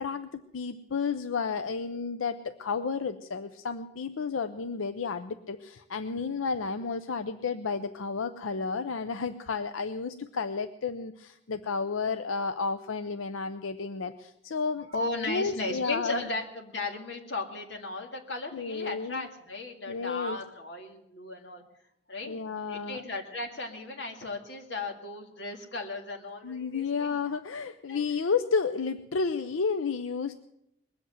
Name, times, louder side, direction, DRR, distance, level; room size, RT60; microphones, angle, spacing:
voice 1, 0.0-14.9 15.3-16.2 18.5-19.2 19.9-20.4 22.3-23.0 26.4-30.4, left 5 dB, 90° left, 10 dB, 0.6 m, -32 dB
voice 2, 14.9-21.6 22.1-27.2 27.9-28.1, left 2 dB, 65° left, 2 dB, 2.1 m, -36 dB
21.0 x 7.9 x 7.6 m, 0.80 s
head